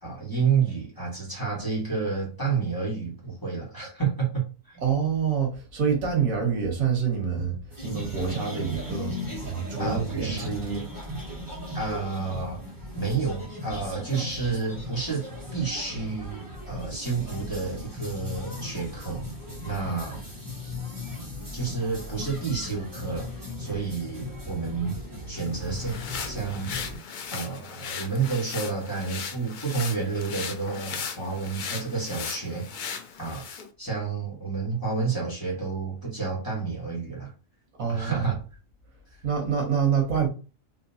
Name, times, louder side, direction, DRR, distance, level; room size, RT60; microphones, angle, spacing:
voice 1, 0.0-4.8 9.8-10.5 11.7-12.6 12.9-15.2 15.5-19.2 19.6-20.2 21.5-23.3 23.6-24.9 25.3-26.9 27.3-32.9 33.2-33.4 33.8-37.3 37.9-38.4 39.1-39.2, right 5 dB, 15° left, 1.5 m, -30 dB
voice 2, 4.8-7.6 7.8-9.2 9.4-10.8 37.8-38.3 39.2-40.3, right 7 dB, 80° right, 1.6 m, -26 dB
sound 1, 7.7-27.0, left 1 dB, 15° right, 0.8 m, -37 dB
sound 2, 25.4-33.7, left 6 dB, 70° left, 0.4 m, -37 dB
3.6 x 2.7 x 2.8 m
omnidirectional pair, 1.4 m